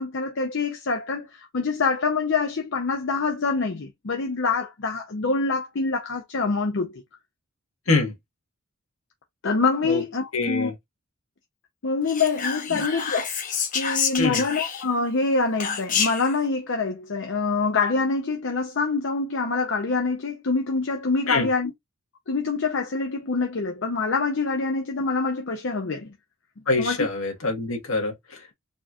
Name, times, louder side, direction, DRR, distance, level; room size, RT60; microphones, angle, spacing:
voice 1, 0.0-7.0 9.4-10.7 11.8-13.3 13.7-21.7 22.3-26.1 26.8-27.0, left 4 dB, 60° left, 0.7 m, -25 dB
voice 2, 10.3-10.7 12.7-12.8 14.2-14.4 21.3-21.5 26.7-28.5, left 3 dB, 75° left, 1.7 m, -25 dB
Whispering, 12.1-15.1 15.6-16.3, left 7 dB, 40° left, 1.0 m, -28 dB
4.3 x 2.9 x 2.4 m
head